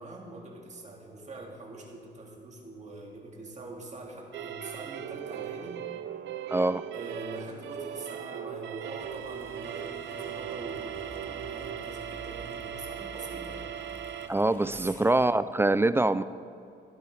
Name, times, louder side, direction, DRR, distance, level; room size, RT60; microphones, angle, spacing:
voice 1, 0.0-5.9 6.9-13.7 14.5-15.0, right 2 dB, 35° right, 0 dB, 2.1 m, -43 dB
sound 1, 4.3-14.3, right 9 dB, 65° right, 0.6 m, -39 dB
voice 2, 6.5-6.8 14.3-16.2, right 2 dB, 10° right, 14 dB, 0.3 m, -24 dB
sound 2, 9.0-15.3, equal, 10° left, 1.4 m, -50 dB
16.0 x 11.5 x 3.3 m, 2.7 s
cardioid pair, 90°, 20 cm